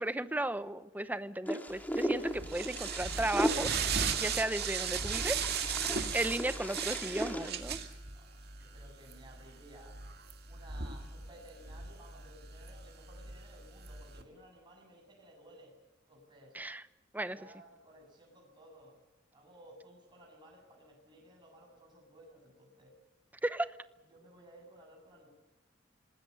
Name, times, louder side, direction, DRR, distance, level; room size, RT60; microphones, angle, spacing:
voice 1, 0.0-3.7 4.2-5.4 5.8-7.8 16.5-16.8 17.1-17.4 23.4-23.7, right 1 dB, 10° right, 13 dB, 0.8 m, -35 dB
Wind, 1.5-7.5, equal, 10° left, 2.0 m, -37 dB
sound 1, 1.8-14.2, right 6 dB, 55° right, 2.3 m, -37 dB
voice 2, 8.1-10.0 10.5-15.8 16.1-16.6 17.2-19.0 19.3-22.9 24.0-25.3, right 1 dB, 25° right, 0 dB, 8.0 m, -57 dB
26.5 x 20.0 x 6.9 m, 1.1 s
head